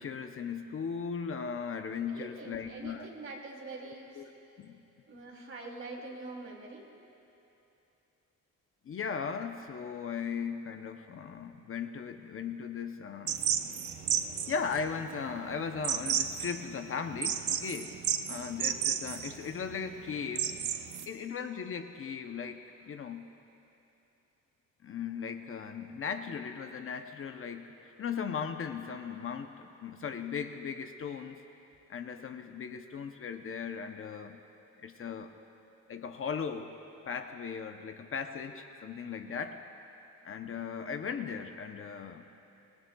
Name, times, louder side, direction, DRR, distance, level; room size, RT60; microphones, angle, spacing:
voice 1, 0.0-3.1 3.8-4.3 4.6-4.8 8.8-13.4 14.5-17.9 18.3-20.7 21.1-23.3 24.8-31.4 31.9-34.4 34.8-35.3 35.9-36.7 37.1-39.6 40.2-42.3, left 6 dB, 45° left, 6 dB, 0.7 m, -38 dB
voice 2, 2.1-4.2 5.1-6.8, right 2 dB, 45° right, -2 dB, 2.9 m, -44 dB
sound 1, 13.3-21.1, right 8 dB, 70° right, 0.8 m, -33 dB
26.0 x 19.5 x 2.3 m, 2.9 s
wide cardioid pair, 155°, 31 cm